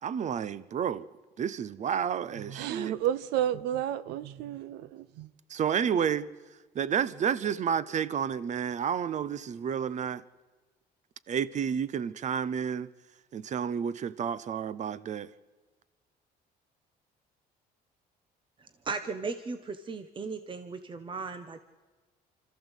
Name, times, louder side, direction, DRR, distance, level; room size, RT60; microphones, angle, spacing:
voice 1, 0.0-1.1 1.4-3.0 5.5-6.3 6.7-10.2 11.3-12.9 13.3-15.3, right 8 dB, 45° right, 0.8 m, -30 dB
voice 2, 2.5-5.3, right 11 dB, 90° right, 0.9 m, -31 dB
voice 3, 18.6-21.6, right 4 dB, 30° right, 1.2 m, -37 dB
25.5 x 14.0 x 8.2 m
cardioid pair, 110°, 17 cm